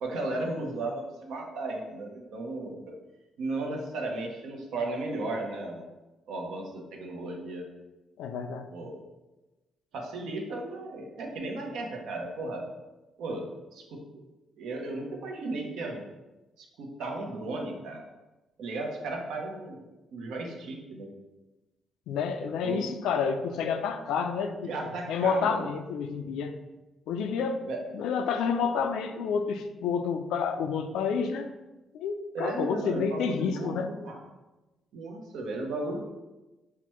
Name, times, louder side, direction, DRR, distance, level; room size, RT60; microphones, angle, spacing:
voice 1, 0.0-3.0 3.4-5.9 6.3-7.7 8.7-9.0 9.9-12.7 13.2-14.0 14.6-16.0 16.6-18.0 18.6-19.8 20.1-21.1 22.6-22.9 24.7-25.8 27.6-27.8 32.3-33.8 34.0-34.2 34.9-36.0, right 2 dB, 80° right, 1 dB, 0.8 m, -35 dB
voice 2, 8.2-8.7 22.1-24.7 25.1-26.5 27.1-27.6 27.9-31.5 31.9-33.9, left 6 dB, 90° left, 7 dB, 0.3 m, -29 dB
5.8 x 2.2 x 3.0 m, 1.1 s
cardioid pair, 90°, 0 cm